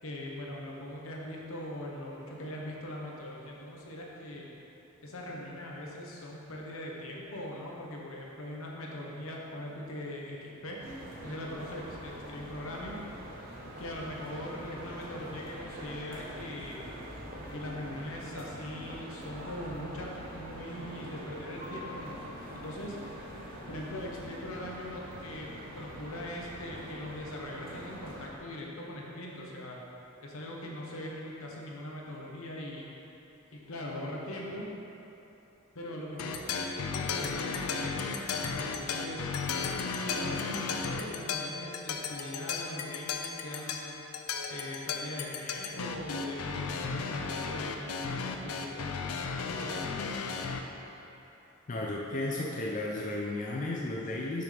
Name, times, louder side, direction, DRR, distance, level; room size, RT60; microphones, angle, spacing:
voice 1, 0.0-4.5 5.0-10.8 11.2-13.0 13.8-16.9 17.5-22.2 22.5-23.0 23.7-25.5 25.7-29.8 30.2-32.9 33.5-34.7 35.7-39.3 40.0-44.0 44.5-50.1, left 1 dB, 70° left, -2 dB, 1.0 m, -41 dB
sound 1, 10.8-28.3, equal, 45° right, 1.1 m, -44 dB
sound 2, 36.2-50.6, left 5 dB, 85° left, 0.5 m, -35 dB
voice 2, 51.7-54.4, left 2 dB, 35° left, -3 dB, 0.5 m, -33 dB
6.7 x 6.1 x 3.4 m, 3.0 s
head